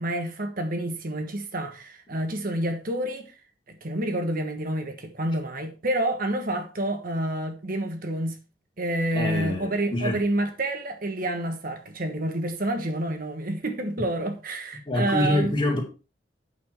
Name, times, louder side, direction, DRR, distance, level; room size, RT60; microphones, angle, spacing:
voice 1, 0.0-3.3 3.7-8.4 8.8-15.5, right 1 dB, 50° right, 1.3 m, -28 dB
voice 2, 9.1-10.2 14.9-15.8, left 1 dB, 30° left, 2.6 m, -25 dB
8.6 x 6.2 x 4.6 m
head